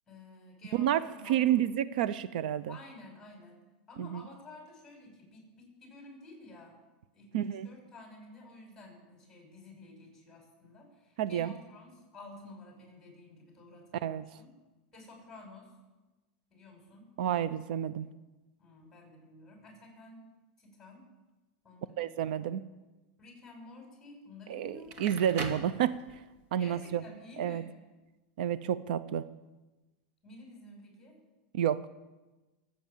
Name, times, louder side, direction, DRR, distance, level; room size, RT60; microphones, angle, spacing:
voice 1, 0.1-1.4 2.7-3.6 3.9-6.7 7.1-14.5 14.9-15.7 16.5-17.1 18.6-20.3 20.6-21.1 21.6-22.5 23.2-25.1 26.6-27.7 30.2-31.2, left 2 dB, 10° left, 1 dB, 6.0 m, -51 dB
voice 2, 0.7-2.8 4.0-4.3 7.3-7.7 11.2-11.5 14.0-14.4 17.2-18.1 22.0-22.6 24.5-26.0 26.5-27.0 27.4-27.6 28.4-29.3 31.5-31.8, right 10 dB, 75° right, 15 dB, 0.6 m, -30 dB
Crackle, 24.7-26.4, right 3 dB, 45° right, 2.2 m, -40 dB
22.0 x 8.6 x 7.3 m, 1.1 s
supercardioid pair, 145°, 5 cm